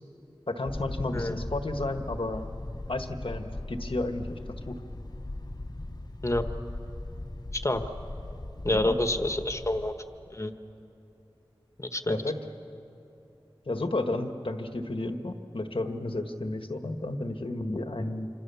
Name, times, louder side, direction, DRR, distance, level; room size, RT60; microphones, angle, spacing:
voice 1, 0.5-2.4 2.9-4.8 8.7-9.0 12.1-12.4 13.7-18.3, left 2 dB, 70° left, 6 dB, 1.6 m, -32 dB
sound 1, 0.6-9.9, left 2 dB, 50° left, 1.2 m, -39 dB
voice 2, 8.6-9.9 10.3-10.5 11.8-12.2, left 1 dB, 30° left, 7 dB, 1.4 m, -27 dB
28.0 x 26.5 x 7.0 m, 2.8 s
wide cardioid pair, 50°, 9 cm